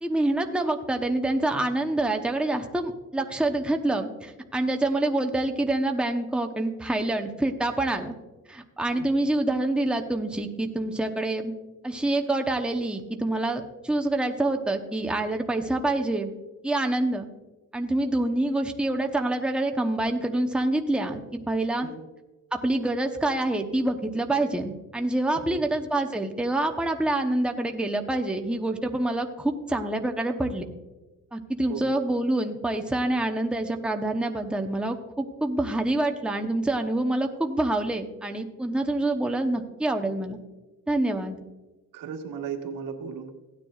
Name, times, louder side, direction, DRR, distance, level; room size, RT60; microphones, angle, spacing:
voice 1, 0.0-8.2 8.5-11.5 11.8-16.3 16.6-17.3 17.7-21.9 22.5-30.6 31.3-40.4 40.9-41.4, right 2 dB, 5° right, 3 dB, 0.9 m, -26 dB
voice 2, 8.9-9.3 21.8-22.0 25.3-25.6 31.7-32.0 41.9-43.3, right 7 dB, 80° right, 3 dB, 1.5 m, -36 dB
16.5 x 9.7 x 2.4 m, 1.2 s
cardioid pair, 105°, 33 cm